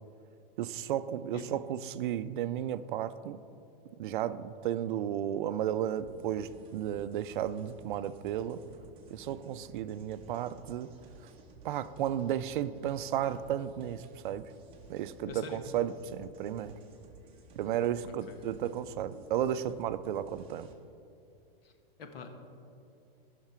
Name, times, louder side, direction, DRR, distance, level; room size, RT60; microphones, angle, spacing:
voice 1, 0.6-3.4 4.0-8.6 9.1-10.9 11.6-14.5 14.9-16.7 17.6-20.7, right 10 dB, 55° right, 13 dB, 0.4 m, -33 dB
sound 1, 6.0-20.7, right 3 dB, 20° right, 0.9 m, -55 dB
voice 2, 15.3-15.6 18.0-18.4 21.6-21.7 22.0-22.3, left 5 dB, 75° left, 5 dB, 1.4 m, -44 dB
14.5 x 5.8 x 4.4 m, 2.6 s
supercardioid pair, 165°, 30 cm